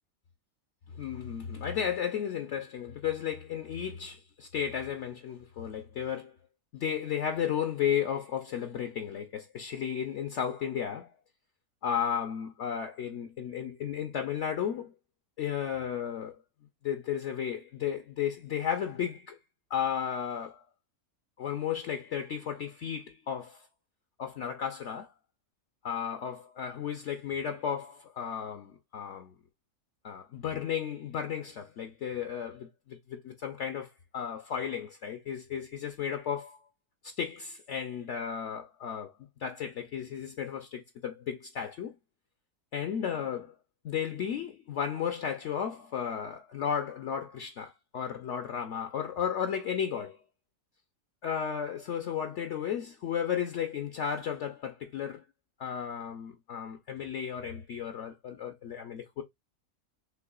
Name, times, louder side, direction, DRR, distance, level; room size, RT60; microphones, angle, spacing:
voice 1, 0.9-6.3 6.7-11.1 11.8-14.9 15.4-16.4 16.8-19.4 19.7-20.6 21.4-23.7 24.2-25.1 25.8-29.4 30.0-36.6 37.0-39.1 39.4-41.9 42.7-43.5 43.8-50.2 51.2-55.2 55.6-59.2, left 8 dB, 60° left, 0.8 m, -34 dB
5.8 x 3.2 x 2.3 m
omnidirectional pair, 1.6 m